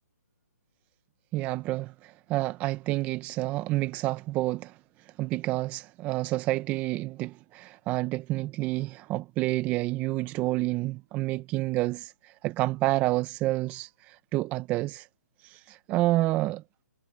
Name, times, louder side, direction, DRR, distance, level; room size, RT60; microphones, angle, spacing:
voice 1, 1.3-4.8 5.2-15.1 15.4-16.6, right 18 dB, 15° right, 0.7 m, -29 dB
hypercardioid pair, 155°, 9 cm